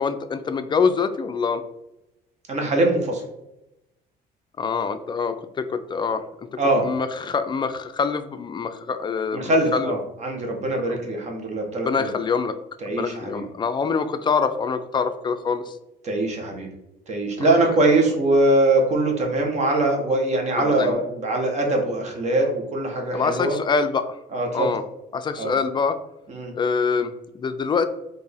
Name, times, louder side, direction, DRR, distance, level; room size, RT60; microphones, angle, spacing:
voice 1, 0.0-1.6 4.6-6.5 6.8-9.9 11.8-12.6 12.9-15.8 20.6-21.0 23.1-24.2 24.5-24.8 25.1-26.0 26.5-27.8, left 5 dB, 25° left, 10 dB, 0.3 m, -25 dB
voice 2, 2.5-3.2 6.6-6.9 9.3-12.1 12.8-13.4 16.0-16.7 17.1-23.6 24.3-24.7 25.4-25.5 26.3-26.5, right 2 dB, 45° right, 2 dB, 1.1 m, -22 dB
4.3 x 2.7 x 3.4 m, 0.90 s
cardioid pair, 110°, 17 cm